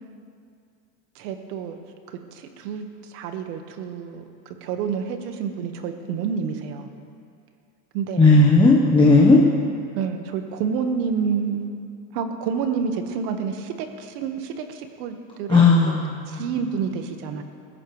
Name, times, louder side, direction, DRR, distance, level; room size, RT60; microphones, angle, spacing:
voice 1, 1.1-1.8 2.1-6.9 7.9-8.3 9.9-11.7 12.1-16.0 16.3-17.4, right 6 dB, 70° right, 6 dB, 1.7 m, -29 dB
voice 2, 8.2-9.4 15.5-16.4, left 3 dB, 10° left, -4 dB, 1.2 m, -15 dB
21.5 x 15.0 x 3.3 m, 2.4 s
supercardioid pair, 135°, 49 cm